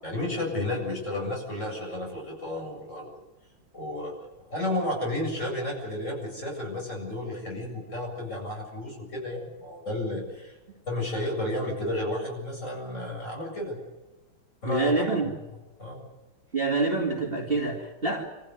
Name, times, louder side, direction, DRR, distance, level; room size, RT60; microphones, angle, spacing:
voice 1, 0.0-3.1 3.7-10.6 10.9-13.8 14.6-15.1 15.8-16.0, left 1 dB, 35° left, -1 dB, 8.2 m, -32 dB
voice 2, 14.6-15.3 16.5-18.2, right 3 dB, 25° right, 1 dB, 2.7 m, -26 dB
27.5 x 15.0 x 9.6 m, 1.1 s
omnidirectional pair, 2.3 m